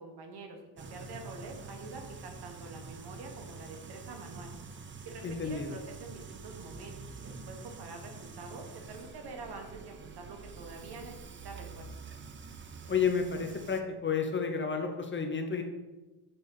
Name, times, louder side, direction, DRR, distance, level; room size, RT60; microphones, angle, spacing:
voice 1, 0.0-4.5 5.0-11.1 11.4-11.9, right 3 dB, 65° right, 3 dB, 1.4 m, -46 dB
sound 1, 0.8-13.8, right 4 dB, 25° right, 0.5 m, -47 dB
voice 2, 5.2-5.8 12.9-15.6, left 6 dB, 25° left, 5 dB, 0.7 m, -31 dB
6.8 x 3.9 x 5.4 m, 1.1 s
cardioid pair, 125°, 43 cm